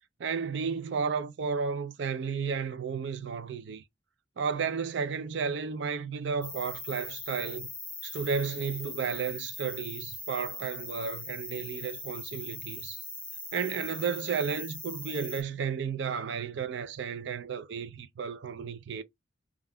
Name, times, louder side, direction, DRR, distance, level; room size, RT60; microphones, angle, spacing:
voice 1, 0.2-3.8 4.4-7.7 8.0-13.0 13.5-19.0, right 6 dB, 60° right, 0.4 m, -33 dB
sound 1, 6.4-15.4, left 2 dB, 5° left, 0.6 m, -41 dB
2.3 x 2.2 x 3.4 m
head